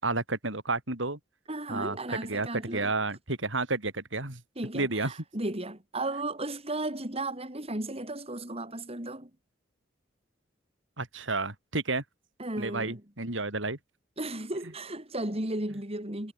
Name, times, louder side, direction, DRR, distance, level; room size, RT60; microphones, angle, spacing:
voice 1, 0.0-1.2 1.7-4.4 4.7-5.1 11.0-12.0 12.6-13.8, right 3 dB, 70° right, 4.4 m, -31 dB
voice 2, 1.5-2.9 4.6-9.3 12.4-13.0 14.2-16.3, right 2 dB, 30° right, 4.5 m, -35 dB
head